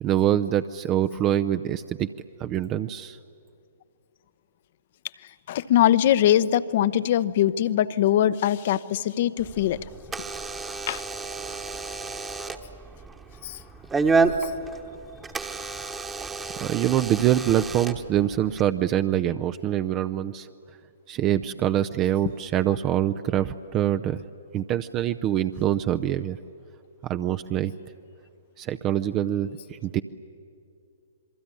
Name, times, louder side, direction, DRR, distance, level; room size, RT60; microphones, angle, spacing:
voice 1, 0.0-2.1 2.4-3.2 16.6-20.5 21.1-24.2 24.5-26.4 27.0-27.7 28.6-30.0, right 11 dB, 25° right, 10 dB, 0.6 m, -25 dB
voice 2, 5.5-9.8 10.9-11.0 13.4-13.6 14.4-14.5, left 11 dB, 50° left, 16 dB, 0.8 m, -22 dB
Door / Alarm, 9.4-18.6, right 4 dB, 10° right, 1.3 m, -30 dB
26.5 x 23.0 x 9.8 m, 2.5 s
figure-of-eight pair, 115°, 0 cm